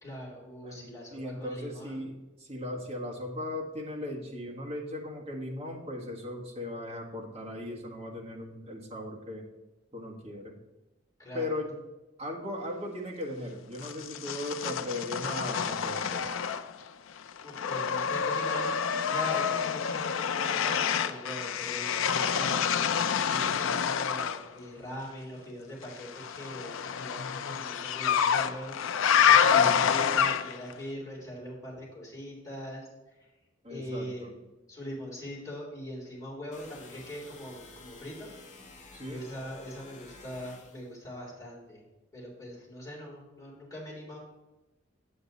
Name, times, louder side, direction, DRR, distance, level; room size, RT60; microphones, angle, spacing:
voice 1, 0.0-2.0 11.2-11.6 17.4-22.8 23.3-28.9 29.6-32.9 33.2-33.3 33.7-34.4 34.7-38.3 39.1-41.8 42.1-44.2, equal, 15° left, -6 dB, 3.2 m, -42 dB
voice 2, 0.6-9.4 9.9-10.5 11.3-11.8 12.2-16.3 29.5-29.9 33.6-34.3 38.9-39.2, left 1 dB, 30° right, -2 dB, 1.6 m, -37 dB
sound 1, 13.8-16.9 17.2-24.4 26.0-30.7, left 7 dB, 75° left, 0.4 m, -27 dB
sound 2, 36.5-40.9, left 3 dB, 35° left, 1.2 m, -51 dB
8.0 x 7.9 x 4.0 m, 1.1 s
head